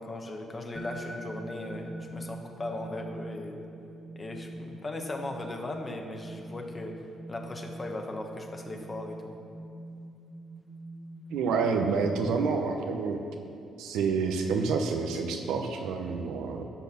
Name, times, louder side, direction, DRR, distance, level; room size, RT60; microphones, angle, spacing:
voice 1, 0.0-3.6 4.1-6.9 7.3-9.3, left 2 dB, 25° left, 3 dB, 1.3 m, -38 dB
sound 1, 0.7-12.5, right 1 dB, 5° right, 1.3 m, -44 dB
voice 2, 11.3-13.2 13.8-16.7, right 5 dB, 90° right, 4 dB, 0.9 m, -28 dB
11.5 x 6.6 x 5.9 m, 2.7 s
cardioid pair, 90°, 0 cm